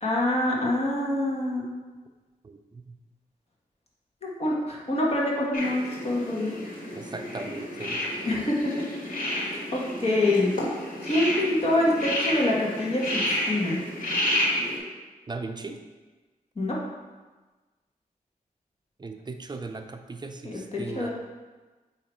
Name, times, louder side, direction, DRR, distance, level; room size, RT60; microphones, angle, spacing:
voice 1, 0.0-1.7 4.2-6.6 8.2-8.9 9.3-10.5 11.0-13.8 16.5-16.8 20.4-21.1, left 1 dB, 45° left, -4 dB, 1.6 m, -26 dB
voice 2, 2.4-2.9 6.9-8.0 15.3-15.8 19.0-21.1, right 3 dB, 30° right, 6 dB, 0.5 m, -37 dB
sound 1, 5.5-14.8, left 1 dB, 65° left, 2.0 m, -30 dB
8.4 x 3.0 x 4.6 m, 1.3 s
wide cardioid pair, 90°, 15 cm